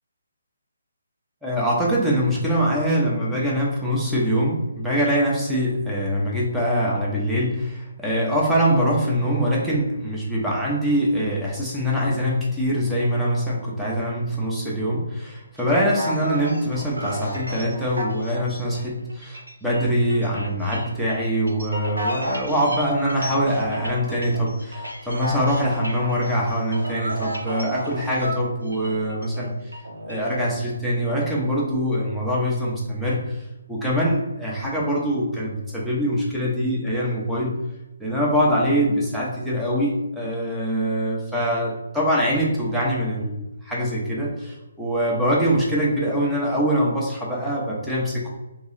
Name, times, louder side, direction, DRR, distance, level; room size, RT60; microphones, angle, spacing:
voice 1, 1.4-29.7 30.1-33.4 33.7-37.6 38.0-48.3, equal, ahead, -6 dB, 0.9 m, -23 dB
sound 1, 15.6-28.3 28.7-30.5, equal, 85° right, 0.9 m, -33 dB
2.9 x 2.9 x 3.9 m, 1.0 s
figure-of-eight pair, 140°, 0 cm